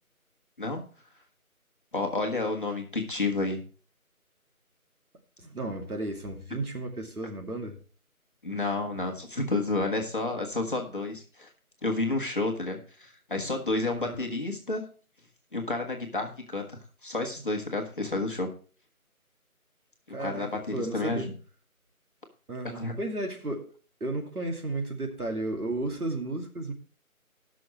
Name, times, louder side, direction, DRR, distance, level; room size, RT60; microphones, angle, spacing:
voice 1, 1.9-3.6 8.4-11.5 11.8-14.8 15.5-18.5 20.2-21.2 22.6-22.9, left 2 dB, 35° left, 1 dB, 1.4 m, -30 dB
voice 2, 5.4-7.8 14.0-14.3 20.1-21.3 22.5-23.7 24.0-26.7, right 2 dB, 90° right, 2 dB, 2.5 m, -33 dB
18.0 x 6.2 x 3.1 m, 0.39 s
figure-of-eight pair, 170°, 44 cm